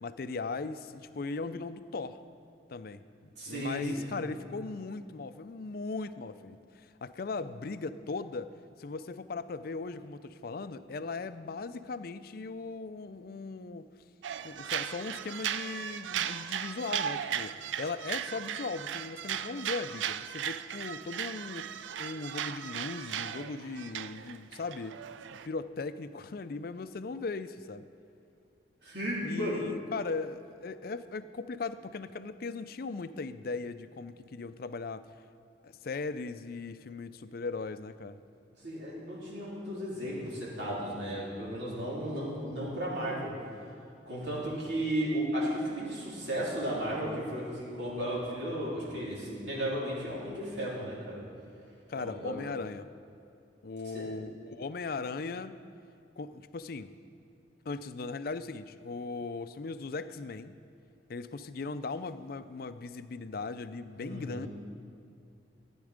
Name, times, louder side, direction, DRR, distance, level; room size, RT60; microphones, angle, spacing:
voice 1, 0.0-2.2 2.7-8.5 8.8-13.8 14.4-21.7 22.0-24.9 25.3-27.9 29.2-35.1 35.6-38.2 51.9-52.9 53.6-55.6 56.2-56.9 57.7-60.6 61.1-64.5, left 4 dB, 55° left, 13 dB, 0.4 m, -38 dB
voice 2, 3.4-4.2 28.8-29.6 38.6-43.4 44.1-51.2 51.9-52.4 53.9-54.1 64.0-64.5, right 1 dB, 70° right, -6 dB, 3.6 m, -34 dB
sound 1, 14.2-25.5, right 9 dB, 90° right, 0.4 m, -37 dB
14.5 x 9.7 x 5.1 m, 2.5 s
head